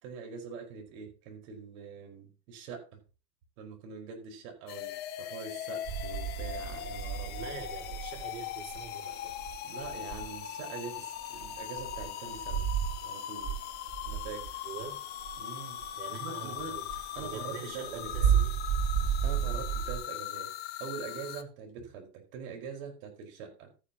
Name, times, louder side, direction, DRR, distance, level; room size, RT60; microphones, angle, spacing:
voice 1, 0.0-3.0 3.6-7.6 9.6-12.7 13.0-13.7 14.0-14.7 15.4-15.8 16.1-16.9 17.1-18.3 19.2-20.5 20.8-23.7, right 6 dB, 60° right, 3 dB, 4.9 m, -44 dB
sound 1, 4.7-21.4, left 11 dB, 20° left, 0.6 m, -40 dB
sound 2, 5.8-10.9 11.2-13.1 13.4-16.2 16.5-20.0, right 9 dB, 35° right, 3.1 m, -33 dB
voice 2, 7.3-9.4 14.6-15.0 16.0-16.9 17.2-18.6, right 7 dB, 90° right, 1 dB, 4.7 m, -44 dB
14.0 x 9.6 x 2.9 m, 0.33 s
supercardioid pair, 145°, 49 cm